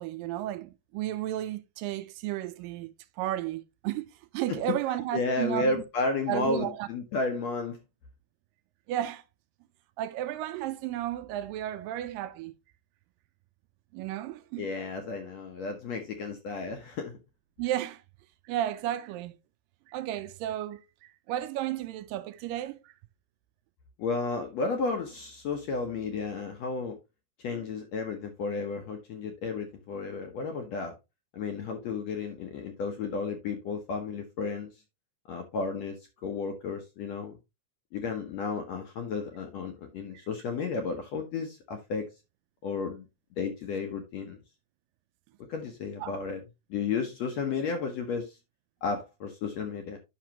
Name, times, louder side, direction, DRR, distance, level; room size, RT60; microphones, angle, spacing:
voice 1, 0.0-2.9 3.2-4.1 4.3-5.8 6.3-6.9 8.9-9.2 10.0-12.5 13.9-14.7 17.6-18.0 18.5-19.4 19.9-22.8 46.0-46.2, right 13 dB, 80° right, 2.0 m, -33 dB
voice 2, 5.1-7.8 14.6-17.2 24.0-27.0 27.4-31.0 31.3-34.7 35.3-36.0 36.2-37.4 37.9-42.1 42.6-43.0 43.4-44.4 45.5-46.4 46.7-48.4 48.8-50.0, left 4 dB, 75° left, 1.6 m, -33 dB
9.9 x 6.0 x 2.9 m
omnidirectional pair, 4.4 m